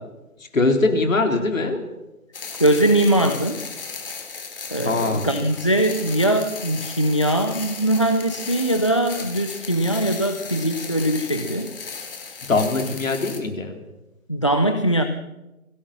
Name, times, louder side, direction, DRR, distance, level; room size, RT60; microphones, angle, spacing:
voice 1, 0.5-1.8 4.8-5.3 12.5-13.8, left 3 dB, 60° left, 5 dB, 4.0 m, -21 dB
sound 1, 2.3-13.4, left 5 dB, 40° left, 3.4 m, -36 dB
voice 2, 2.6-3.6 4.7-11.7 14.3-15.0, right 1 dB, 20° left, 7 dB, 0.6 m, -21 dB
23.0 x 16.5 x 7.4 m, 1.0 s
figure-of-eight pair, 160°, 44 cm